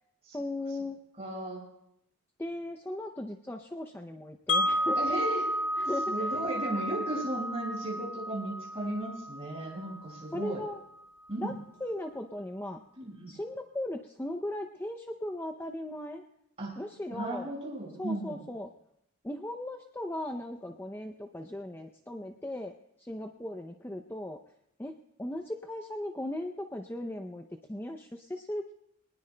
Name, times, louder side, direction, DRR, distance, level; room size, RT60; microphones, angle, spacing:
voice 1, 0.3-1.0 2.4-5.2 5.8-6.4 10.3-10.8 11.4-11.5 11.8-12.8 13.3-16.2 16.8-17.5 18.0-18.7 19.2-22.7 23.0-24.4 24.8-24.9 25.2-28.7, left 1 dB, 10° left, 5 dB, 0.5 m, -37 dB
voice 2, 1.2-1.6 4.9-5.4 6.1-10.6 11.3-11.5 13.0-13.4 16.6-16.8 17.1-18.4, right 1 dB, 30° right, -3 dB, 5.7 m, -35 dB
Wind chime, 4.5-10.5, equal, 60° left, 1.3 m, -32 dB
23.5 x 19.0 x 2.2 m, 0.78 s
head